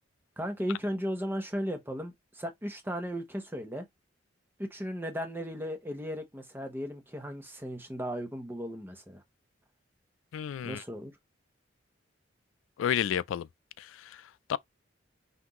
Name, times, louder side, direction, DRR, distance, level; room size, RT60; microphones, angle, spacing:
voice 1, 0.4-3.8 4.6-9.2 10.6-11.1, equal, 10° right, 0.9 m, -36 dB
voice 2, 10.3-10.8 12.8-13.5 13.8-14.6, left 9 dB, 90° left, 0.3 m, -32 dB
5.9 x 2.6 x 3.0 m
head